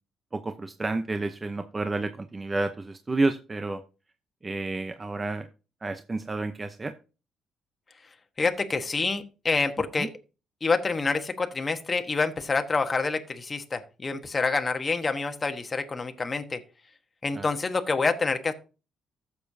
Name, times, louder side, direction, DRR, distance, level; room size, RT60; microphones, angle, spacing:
voice 1, 0.3-3.8 4.4-5.5 5.8-6.9 10.0-10.1 17.3-17.5, right 2 dB, 25° right, 8 dB, 0.7 m, -30 dB
voice 2, 8.4-10.1 10.6-16.6 17.2-18.5, left 4 dB, 30° left, 6 dB, 1.2 m, -27 dB
14.0 x 7.2 x 2.7 m, 0.32 s
cardioid pair, 90°, 0 cm